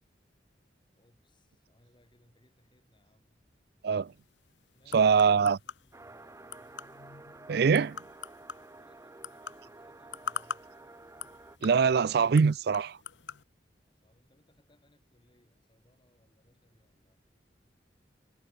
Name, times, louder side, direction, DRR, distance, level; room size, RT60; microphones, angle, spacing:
voice 1, 0.9-3.4 4.7-6.8 8.7-10.8 13.8-17.2, left 1 dB, 25° left, 7.2 m, -67 dB
sound 1, 4.0-13.4, left 6 dB, 90° left, 1.2 m, -45 dB
voice 2, 4.9-5.6 7.5-8.0 11.6-13.0, right 5 dB, 60° right, 0.4 m, -23 dB
sound 2, 5.9-11.6, right 2 dB, 15° right, 0.7 m, -51 dB
head